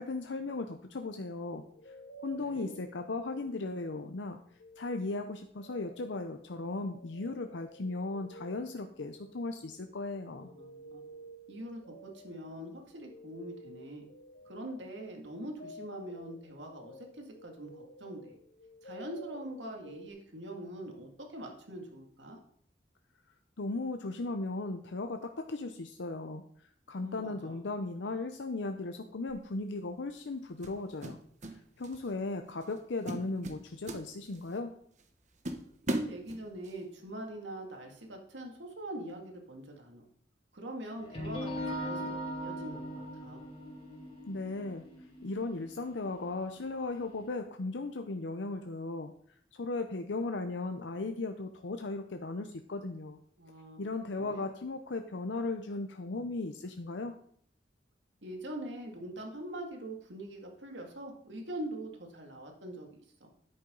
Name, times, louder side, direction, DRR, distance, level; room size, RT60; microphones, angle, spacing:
voice 1, 0.0-1.9 2.2-4.4 4.8-10.5 23.6-31.2 31.4-34.7 44.3-44.9 45.2-49.1 49.5-53.2 53.8-57.2, left 3 dB, 85° left, 6 dB, 0.7 m, -37 dB
sound 1, 1.7-4.1 4.4-20.1, right 1 dB, 70° left, 1.1 m, -52 dB
voice 2, 10.3-11.0 11.5-14.0 14.5-18.4 18.8-22.4 27.0-27.6 35.9-40.0 40.5-43.4 53.4-53.8 54.2-54.5 58.2-63.3, right 1 dB, 90° right, 2 dB, 2.3 m, -43 dB
sound 2, 29.3-29.5 30.6-31.6 31.8-32.1 32.6-32.8 33.1-34.6 35.0-35.1 35.4-36.8, right 1 dB, 40° right, 1.0 m, -37 dB
sound 3, 41.0-46.9, equal, 30° left, 2.3 m, -40 dB
10.5 x 8.6 x 3.9 m, 0.62 s
head